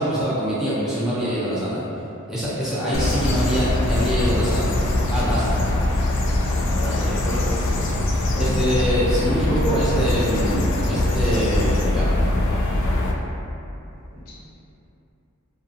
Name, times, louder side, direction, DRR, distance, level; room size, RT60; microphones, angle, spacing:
voice 1, 0.0-1.8 2.3-4.6 5.1-5.6 8.4-12.2, equal, 5° right, -11 dB, 0.5 m, -24 dB
voice 2, 2.7-3.2 6.7-7.6 14.1-14.3, left 1 dB, 75° left, -10 dB, 0.9 m, -32 dB
sound 1, 2.9-13.1, left 2 dB, 60° left, 0.3 m, -22 dB
2.4 x 2.3 x 2.5 m, 2.8 s
head